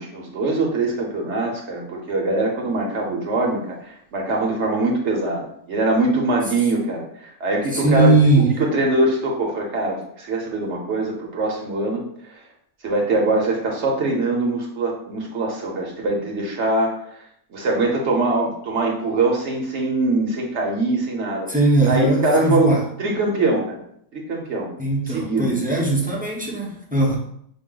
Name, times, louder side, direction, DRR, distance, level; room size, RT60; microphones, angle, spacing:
voice 1, 0.0-8.1 8.6-12.0 12.3-12.4 12.8-17.2 17.5-21.5 21.8-22.7 23.0-23.8 24.1-24.7 25.1-25.5, right 2 dB, 55° right, 0 dB, 0.9 m, -23 dB
voice 2, 7.7-8.5 21.5-22.8 24.8-27.2, right 2 dB, 10° right, -4 dB, 0.4 m, -19 dB
6.0 x 2.0 x 3.7 m, 0.70 s
omnidirectional pair, 1.6 m